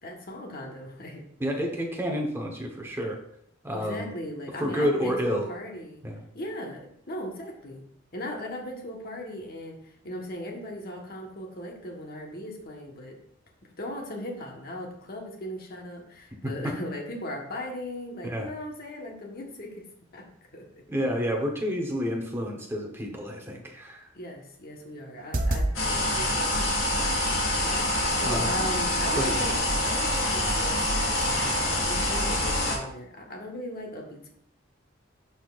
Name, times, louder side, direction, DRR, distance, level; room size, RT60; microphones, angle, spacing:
voice 1, 0.0-1.2 3.7-6.0 6.3-7.8 8.1-13.2 13.8-19.8 20.1-20.3 20.5-20.6 24.1-26.7 27.5-29.5 29.8-34.3, left 1 dB, 50° left, 1 dB, 1.2 m, -38 dB
voice 2, 1.4-3.2 3.6-4.1 4.6-5.5 6.0-6.2 16.4-16.7 18.2-18.5 20.9-24.1 28.2-28.5 29.2-29.3, equal, 10° right, 1 dB, 1.0 m, -29 dB
sound 1, 25.2-25.7 26.4-27.3 28.4-28.5 29.0-29.3 29.7-30.0 30.4-30.5, right 1 dB, 45° right, 0.6 m, -31 dB
sound 2, 25.7-32.8, left 1 dB, 90° left, 2.2 m, -26 dB
11.0 x 4.2 x 2.4 m, 0.71 s
head